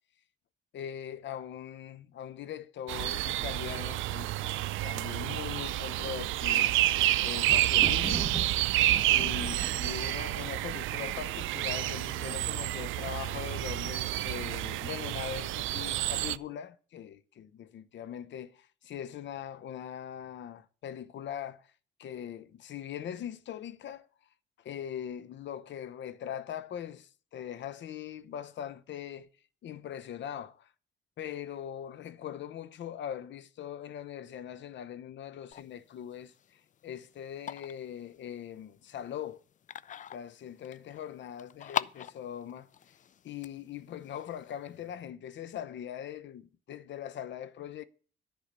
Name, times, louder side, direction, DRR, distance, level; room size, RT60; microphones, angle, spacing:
voice 1, 0.7-6.7 7.2-8.3 9.1-21.7 22.0-24.1 24.6-29.3 29.6-30.7 31.2-39.4 40.1-42.7 43.2-47.8, left 10 dB, 65° left, 0.9 m, -41 dB
sound 1, 2.9-16.4, right 15 dB, 80° right, 0.5 m, -29 dB
Thunder, 6.9-11.6 12.3-12.8 13.1-13.2, right 2 dB, 15° right, 1.3 m, -42 dB
sound 2, 35.5-44.9, left 9 dB, 40° left, 0.4 m, -42 dB
10.5 x 5.6 x 8.1 m
cardioid pair, 90°, 20 cm